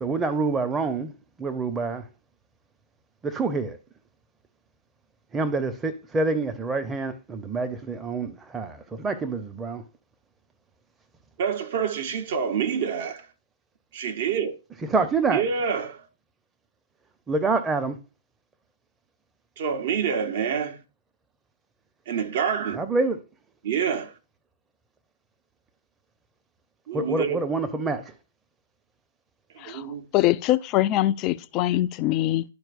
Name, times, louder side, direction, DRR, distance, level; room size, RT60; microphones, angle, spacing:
voice 1, 0.0-1.1 1.4-2.0 3.2-3.8 5.3-9.8 14.9-15.4 17.3-17.9 22.8-23.2 26.9-28.0, right 3 dB, 15° right, 0.8 m, -26 dB
voice 2, 11.4-13.3 13.9-14.5 15.3-16.1 19.6-20.8 22.1-22.8 23.6-24.1 26.9-27.4 29.5-30.1, right 7 dB, 50° right, 1.0 m, -27 dB
voice 3, 30.1-32.4, left 15 dB, 30° left, 0.4 m, -23 dB
11.5 x 4.5 x 2.6 m
figure-of-eight pair, 110°, 0 cm